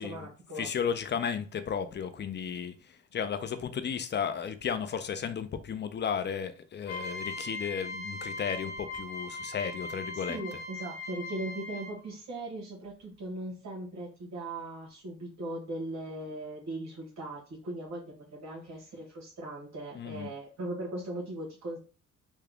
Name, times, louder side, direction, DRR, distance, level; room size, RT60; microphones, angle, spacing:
voice 1, 0.0-0.7 10.3-21.8, right 1 dB, 65° right, 1.5 m, -39 dB
voice 2, 0.6-10.6 19.9-20.3, left 7 dB, 35° left, 0.5 m, -34 dB
sound 1, 6.8-12.1, left 2 dB, 60° left, 1.0 m, -39 dB
3.4 x 2.3 x 3.5 m
cardioid pair, 90°, 30 cm